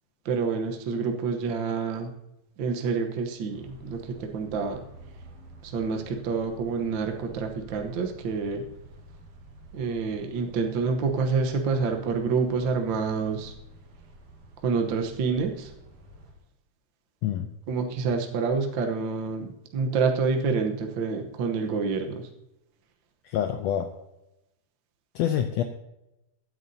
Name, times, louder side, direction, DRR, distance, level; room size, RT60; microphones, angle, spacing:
voice 1, 0.2-2.1 2.6-4.8 5.6-8.6 9.7-13.5 14.6-15.7 17.7-22.3, right 5 dB, 65° right, 3 dB, 1.2 m, -28 dB
sound 1, 3.5-16.3, right 2 dB, 85° right, 3.3 m, -49 dB
voice 2, 23.2-23.9 25.1-25.6, left 10 dB, 75° left, 7 dB, 1.6 m, -26 dB
16.5 x 9.3 x 2.7 m, 0.89 s
omnidirectional pair, 3.5 m